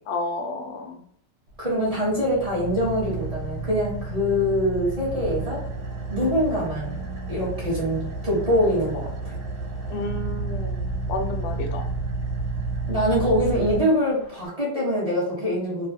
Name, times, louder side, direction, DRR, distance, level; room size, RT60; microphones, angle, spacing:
voice 1, 0.1-1.0 6.2-6.5 9.9-11.9, left 2 dB, 90° left, 4 dB, 1.3 m, -31 dB
Car / Idling, 1.5-14.5, right 3 dB, 50° right, 0.9 m, -31 dB
voice 2, 1.6-5.6 6.1-7.0 7.3-9.3 12.9-15.9, equal, 25° right, -7 dB, 1.0 m, -24 dB
3.0 x 2.3 x 2.6 m, 0.65 s
omnidirectional pair, 2.0 m